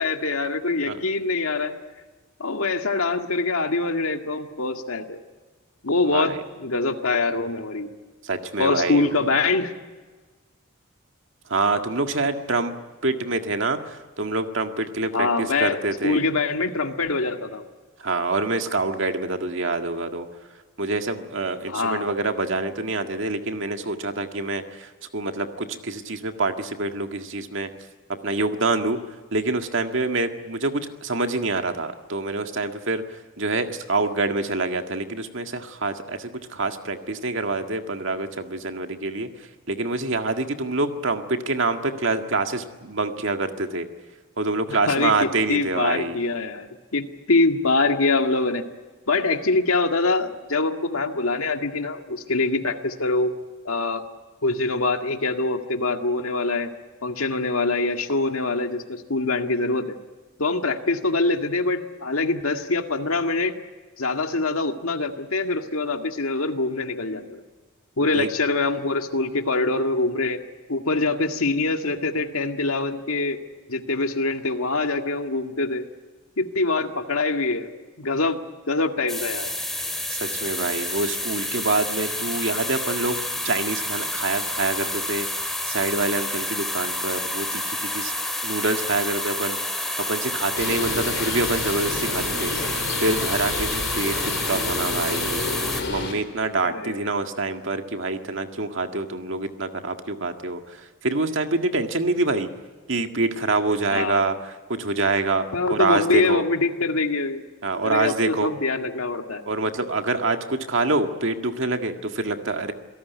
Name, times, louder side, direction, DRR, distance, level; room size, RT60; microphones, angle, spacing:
voice 1, 0.0-1.7 2.4-5.2 5.8-7.9 8.6-9.7 15.1-17.7 21.7-22.1 44.7-48.7 49.1-53.3 53.7-54.0 54.4-56.7 57.0-60.0 60.4-63.5 64.0-67.4 68.0-70.4 70.7-73.4 73.7-75.9 76.4-78.4 78.7-79.5 96.6-97.0 103.9-104.3 105.5-107.4 107.7-109.4, left 3 dB, 85° left, 5 dB, 1.9 m, -24 dB
voice 2, 6.0-6.4 8.2-9.2 11.5-12.7 13.0-16.2 18.0-20.3 20.8-27.7 28.2-29.0 29.3-39.3 39.7-43.9 44.4-46.2 68.0-68.3 80.1-85.3 85.7-88.1 88.4-89.6 90.1-92.7 93.0-95.4 95.9-102.5 102.9-105.4 105.7-106.4 107.6-108.5 109.5-112.7, right 2 dB, 60° right, 6 dB, 1.9 m, -26 dB
sound 1, 79.1-95.8, left 1 dB, ahead, 2.9 m, -29 dB
Bird, 90.6-96.1, left 3 dB, 55° left, 4.1 m, -30 dB
27.5 x 18.0 x 9.4 m, 1.4 s
head